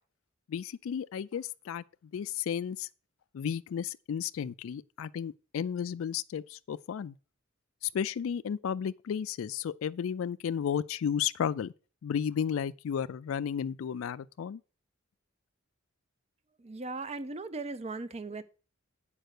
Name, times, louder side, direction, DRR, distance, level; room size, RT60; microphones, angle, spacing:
voice 1, 0.5-1.8 2.1-2.9 3.3-7.1 7.8-11.7 12.0-14.6, left 8 dB, 70° left, 0.3 m, -33 dB
voice 2, 16.6-18.4, right 3 dB, 30° right, 0.6 m, -38 dB
7.8 x 5.3 x 6.5 m
head